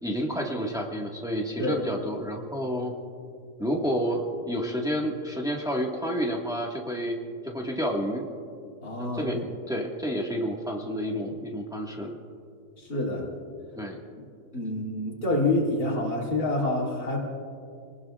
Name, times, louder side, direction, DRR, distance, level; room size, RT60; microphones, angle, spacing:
voice 1, 0.0-2.9 3.6-7.2 7.4-8.2 9.0-9.4 9.7-12.1 13.8-14.0, equal, ahead, -1 dB, 1.6 m, -30 dB
voice 2, 8.8-9.4 12.8-13.3 14.5-17.2, left 2 dB, 65° left, -3 dB, 2.9 m, -27 dB
27.5 x 19.5 x 2.5 m, 2.3 s
omnidirectional pair, 1.7 m